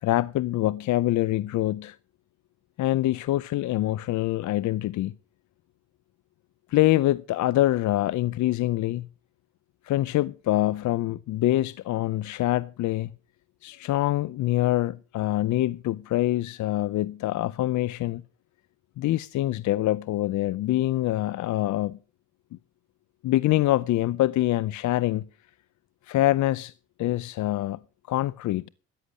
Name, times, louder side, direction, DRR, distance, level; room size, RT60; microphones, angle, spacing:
voice 1, 0.0-2.0 2.8-5.2 6.7-9.1 9.8-13.1 13.6-18.2 19.0-22.0 23.2-25.3 26.0-26.7 27.0-27.8 28.1-28.7, left 15 dB, 70° left, 0.6 m, -25 dB
14.0 x 9.9 x 6.4 m
cardioid pair, 90°, 30 cm